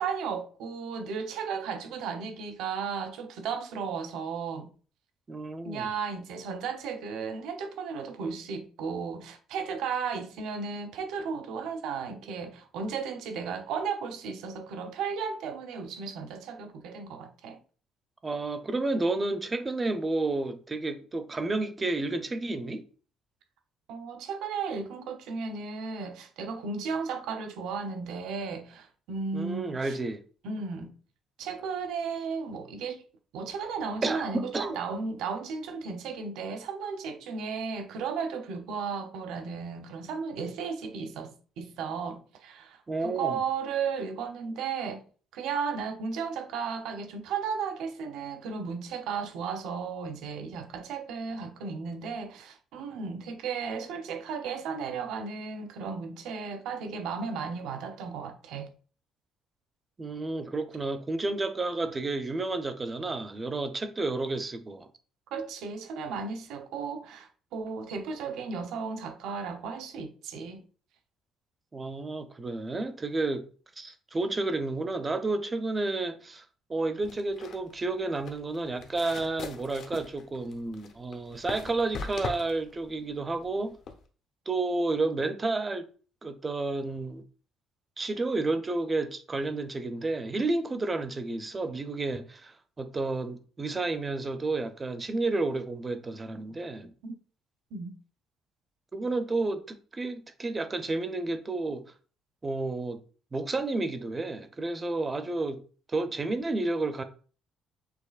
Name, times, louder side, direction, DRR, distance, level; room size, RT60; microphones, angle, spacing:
voice 1, 0.0-4.7 5.6-17.6 23.9-30.0 30.4-30.9 31.4-33.0 33.3-45.0 45.3-58.7 65.3-70.6 97.0-97.1 97.7-98.0, right 5 dB, 75° right, 0.7 m, -35 dB
voice 2, 5.3-5.9 18.2-22.8 29.3-30.2 34.0-34.8 42.9-43.4 60.0-64.9 71.7-73.4 73.8-83.8 84.5-85.8 86.2-87.2 88.0-96.9 98.9-101.8 102.4-103.0 103.3-105.6 105.9-107.0, right 2 dB, 20° right, 0.4 m, -31 dB
sound 1, 77.0-84.0, left 4 dB, 55° left, 0.7 m, -41 dB
6.4 x 2.8 x 2.4 m
cardioid pair, 150°, 0 cm